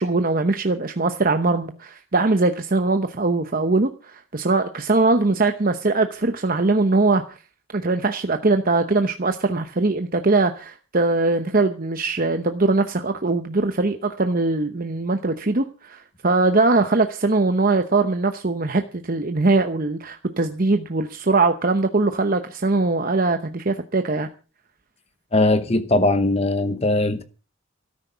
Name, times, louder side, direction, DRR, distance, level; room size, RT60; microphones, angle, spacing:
voice 1, 0.0-7.4 7.7-24.3, right 3 dB, 40° right, 0.9 m, -21 dB
voice 2, 25.3-27.2, left 2 dB, 30° left, 0.9 m, -20 dB
13.5 x 10.0 x 6.8 m
head